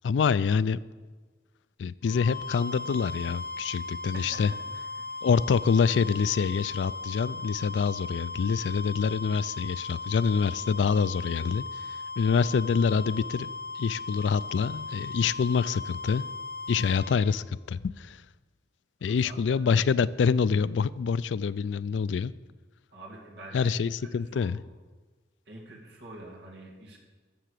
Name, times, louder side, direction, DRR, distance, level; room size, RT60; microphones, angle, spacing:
voice 1, 0.0-0.8 1.8-4.5 5.2-16.2 16.7-18.2 19.0-22.3 23.5-24.6, left 5 dB, 90° left, 18 dB, 0.4 m, -26 dB
sound 1, 2.0-17.3, left 3 dB, 60° left, 1.4 m, -38 dB
voice 2, 19.1-19.6 22.9-24.5 25.5-27.0, right 1 dB, 70° right, -1 dB, 2.4 m, -46 dB
13.5 x 6.9 x 6.6 m, 1.3 s
head